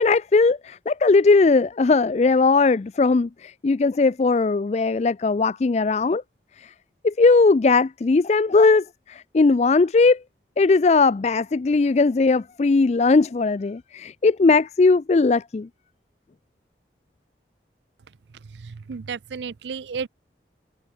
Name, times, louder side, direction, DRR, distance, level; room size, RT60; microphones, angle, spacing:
voice 1, 0.0-6.2 6.6-6.7 7.0-10.2 10.6-15.7, left 3 dB, 40° left, 0.4 m, -19 dB
voice 2, 18.6-20.1, right 5 dB, 75° right, 0.5 m, -33 dB
head